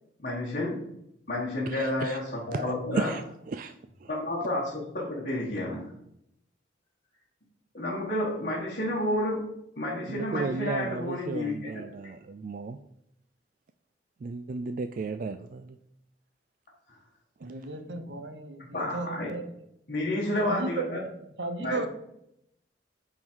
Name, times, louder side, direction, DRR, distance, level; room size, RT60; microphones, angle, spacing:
voice 1, 0.2-0.9 1.3-3.1 4.1-5.9 7.7-11.8 17.9-18.1 18.7-19.3 19.9-21.0 21.6-21.9, left 1 dB, 45° left, -6 dB, 1.6 m, -30 dB
voice 2, 1.7-2.2 2.5-3.7 4.0-4.1 10.1-12.8 14.2-15.8 17.4-17.5, right 4 dB, 45° right, 9 dB, 0.3 m, -34 dB
voice 3, 17.4-19.4 20.4-20.8 21.2-21.9, right 2 dB, 70° right, 8 dB, 0.9 m, -35 dB
9.4 x 3.9 x 4.6 m, 0.79 s
head